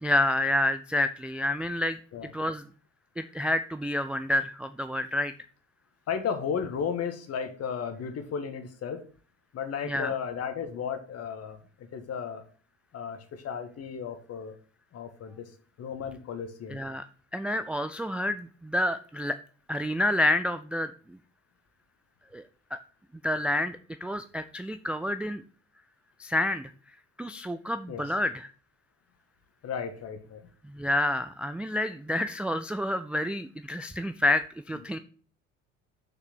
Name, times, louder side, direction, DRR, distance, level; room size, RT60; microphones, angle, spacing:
voice 1, 0.0-2.0 2.3-2.6 3.2-5.3 9.8-10.1 16.7-17.1 17.3-19.4 19.7-20.9 22.3-22.4 22.7-22.8 23.2-25.4 26.2-26.7 27.2-28.5 30.6-35.0, left 1 dB, 5° right, 9 dB, 0.4 m, -28 dB
voice 2, 6.1-9.0 9.5-12.4 12.9-14.5 14.9-15.5 15.8-16.8 27.9-28.0 29.6-30.4, left 7 dB, 40° left, 8 dB, 1.7 m, -34 dB
6.6 x 6.0 x 6.1 m, 0.42 s
figure-of-eight pair, 60°, 38 cm